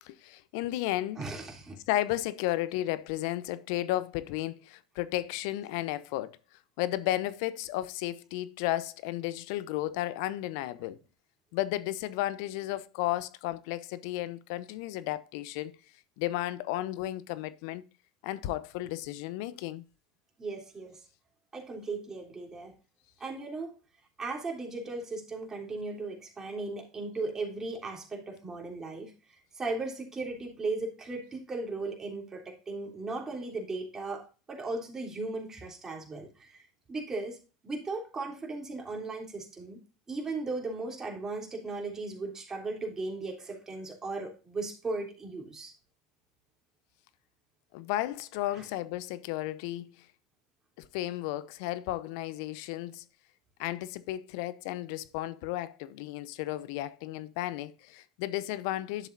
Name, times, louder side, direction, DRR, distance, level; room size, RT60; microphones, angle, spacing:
voice 1, 0.0-1.2 1.9-6.4 6.8-11.0 11.5-15.7 16.2-17.8 18.2-19.8 47.7-50.1 50.8-53.0 53.6-59.1, left 15 dB, 65° left, 0.7 m, -33 dB
voice 2, 1.2-1.8 20.4-21.0 21.5-22.7 23.2-23.7 24.2-37.4 37.6-39.8 40.1-45.7 48.5-48.7, right 3 dB, 25° right, 3.4 m, -37 dB
11.0 x 7.1 x 2.6 m
hypercardioid pair, 85°, 2 cm